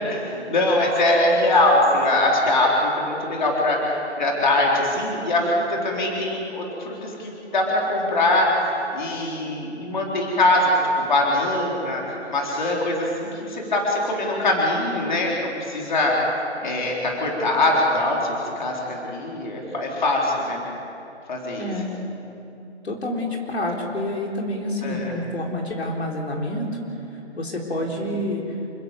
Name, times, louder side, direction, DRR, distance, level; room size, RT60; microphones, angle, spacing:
voice 1, 0.1-3.8 4.2-8.5 8.9-16.2 16.6-20.6 21.3-21.7 24.8-25.1 28.0-28.1, left 1 dB, 40° left, -2 dB, 4.1 m, -22 dB
voice 2, 21.6-21.9 22.8-26.7 27.4-28.6, left 1 dB, 65° left, 0 dB, 4.0 m, -28 dB
28.5 x 15.0 x 8.1 m, 2.9 s
hypercardioid pair, 175°, 34 cm